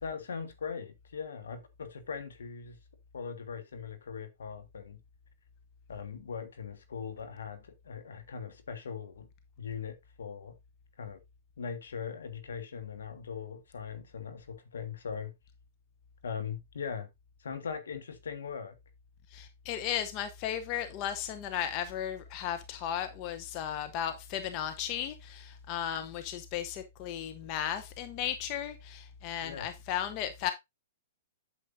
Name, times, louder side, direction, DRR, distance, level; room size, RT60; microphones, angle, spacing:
voice 1, 0.0-2.8 3.1-5.0 5.9-9.3 9.6-10.5 11.0-11.2 11.6-15.3 16.2-17.1 17.4-18.8 29.4-29.7, left 6 dB, 75° left, 1.7 m, -40 dB
voice 2, 19.3-30.5, left 10 dB, 40° left, 0.8 m, -35 dB
8.5 x 7.1 x 2.7 m
hypercardioid pair, 125°, 0 cm